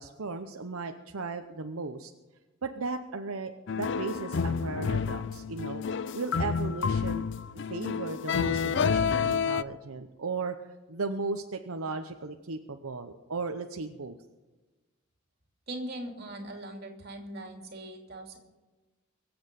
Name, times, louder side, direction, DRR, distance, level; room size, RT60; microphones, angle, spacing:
voice 1, 0.0-2.1 2.6-5.8 6.1-7.3 7.7-10.5 10.9-14.2, right 3 dB, 80° right, 6 dB, 0.8 m, -36 dB
sound 1, 3.7-9.6, left 6 dB, 55° left, 0.4 m, -29 dB
voice 2, 15.7-18.4, right 1 dB, 45° right, 2 dB, 2.8 m, -40 dB
23.5 x 7.9 x 5.3 m, 1.2 s
head